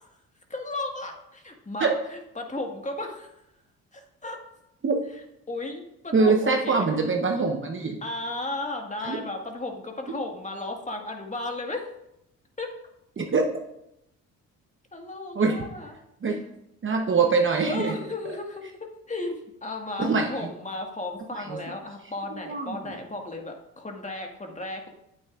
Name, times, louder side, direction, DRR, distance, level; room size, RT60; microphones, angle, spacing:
voice 1, 0.5-3.3 3.9-4.4 5.5-6.9 8.0-11.9 12.6-12.7 14.9-16.0 16.3-16.4 17.6-18.6 19.1-24.9, left 2 dB, 20° left, 2 dB, 1.8 m, -34 dB
voice 2, 6.1-8.0 9.0-9.2 13.2-13.5 15.3-15.6 16.2-16.4 16.8-17.9 20.0-20.3 21.3-21.4 22.5-22.9, right 4 dB, 35° right, 2 dB, 1.1 m, -23 dB
9.6 x 8.6 x 2.5 m, 0.82 s
supercardioid pair, 60°, 34 cm